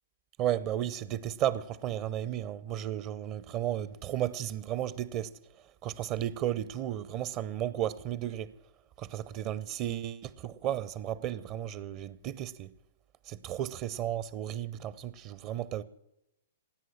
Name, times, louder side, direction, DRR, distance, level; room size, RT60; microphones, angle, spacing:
voice 1, 0.4-5.3 5.8-8.5 9.0-12.7 13.3-15.8, right 11 dB, 30° right, 0.6 m, -34 dB
16.5 x 9.4 x 8.7 m
figure-of-eight pair, 110°, 0 cm